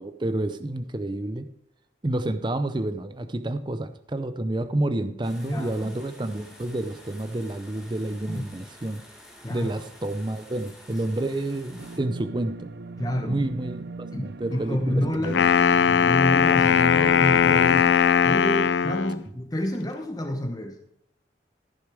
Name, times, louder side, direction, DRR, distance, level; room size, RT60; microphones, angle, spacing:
voice 1, 0.0-1.5 2.0-9.0 9.5-12.7 13.2-15.4, right 1 dB, 25° right, 11 dB, 0.6 m, -29 dB
sound 1, 5.2-12.0, equal, 5° right, 2.1 m, -49 dB
voice 2, 5.5-5.9 8.3-8.4 9.4-9.7 13.0-13.4 14.1-15.6 15.9-17.9 18.2-20.8, equal, 20° left, 4 dB, 1.0 m, -29 dB
sound 2, 11.8-17.9, right 3 dB, 70° right, 0.5 m, -39 dB
Wind instrument woodwind instrument, 15.2-19.2, left 7 dB, 75° left, 0.4 m, -19 dB
14.5 x 6.5 x 4.8 m, 0.75 s
head